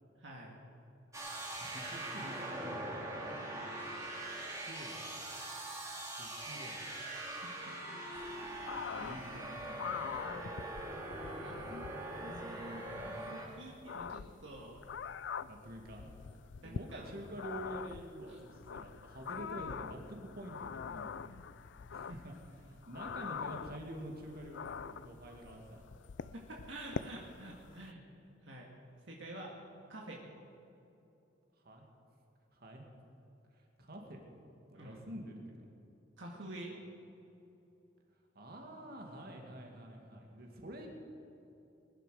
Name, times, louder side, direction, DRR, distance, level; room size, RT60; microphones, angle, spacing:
voice 1, 0.2-0.6 3.8-4.0 7.7-7.8 9.0-9.2 11.1-11.9 12.2-13.0 13.3-14.8 16.6-17.2 18.3-18.4 26.3-28.0 28.4-28.7 29.1-29.5 29.9-30.2 34.7-35.1 36.2-36.7, right 1 dB, 75° right, -1 dB, 1.9 m, -49 dB
sound 1, 1.1-13.5, right 1 dB, 15° right, 2.6 m, -42 dB
voice 2, 1.4-3.3 4.6-5.0 6.2-6.9 8.9-9.5 12.7-13.2 15.5-16.1 16.6-21.3 21.9-22.4 22.6-25.8 31.6-31.9 32.5-32.8 33.6-34.2 34.7-35.7 36.7-36.8 38.3-40.9, right 1 dB, 55° right, 1 dB, 2.3 m, -48 dB
sound 2, 8.2-27.9, left 6 dB, 70° left, 0.4 m, -45 dB
21.0 x 11.5 x 5.1 m, 2.9 s
head